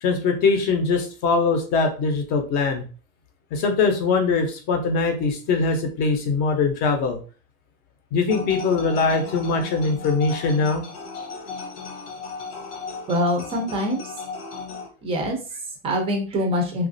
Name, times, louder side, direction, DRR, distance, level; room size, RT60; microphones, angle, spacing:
voice 1, 0.0-2.8 3.5-7.2 8.1-10.8, left 4 dB, 35° left, 5 dB, 0.6 m, -22 dB
sound 1, 8.3-14.9, left 4 dB, 90° left, 1.1 m, -36 dB
voice 2, 13.1-14.2 15.0-16.9, equal, 20° right, 2 dB, 0.5 m, -25 dB
3.0 x 2.4 x 2.5 m, 0.36 s
supercardioid pair, 160°, 29 cm